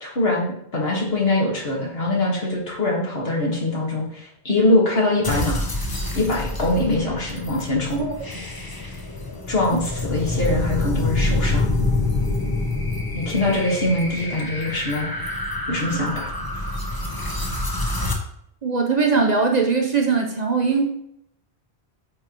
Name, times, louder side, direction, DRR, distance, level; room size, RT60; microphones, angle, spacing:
voice 1, 0.0-5.6 6.1-8.0 9.5-11.7 13.1-15.1 15.7-16.3, left 2 dB, 65° left, -3 dB, 2.1 m, -23 dB
sound 1, 5.2-18.1, left 2 dB, 20° left, 0.9 m, -26 dB
voice 2, 18.6-20.8, right 4 dB, 45° right, 2 dB, 0.9 m, -20 dB
8.7 x 4.6 x 3.0 m, 0.74 s
omnidirectional pair, 1.1 m